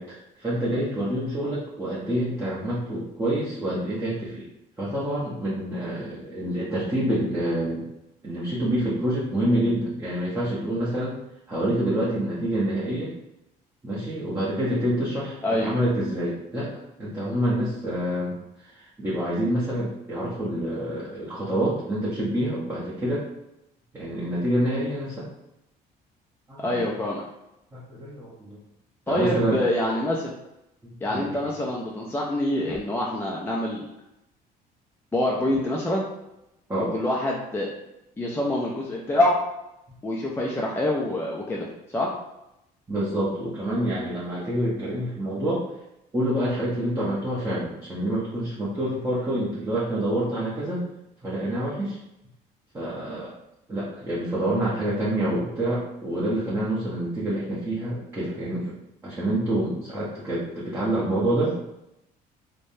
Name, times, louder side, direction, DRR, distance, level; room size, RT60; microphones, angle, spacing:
voice 1, 0.0-4.4 4.8-7.8 8.2-11.2 11.5-13.1 13.8-18.4 18.6-23.2 23.9-25.3 26.5-26.9 27.7-28.6 29.1-29.6 30.8-31.3 36.7-36.9 42.9-45.7 46.1-50.8 51.2-52.0 52.7-53.3 53.7-58.8 59.0-61.6, right 1 dB, 15° right, -8 dB, 0.8 m, -27 dB
voice 2, 15.4-15.7 26.6-27.2 29.1-30.3 31.0-33.9 35.1-36.0 36.8-37.7 38.2-39.3 40.0-42.1, left 1 dB, 10° left, -3 dB, 0.4 m, -26 dB
3.3 x 2.1 x 2.6 m, 0.87 s
cardioid pair, 110°, 17 cm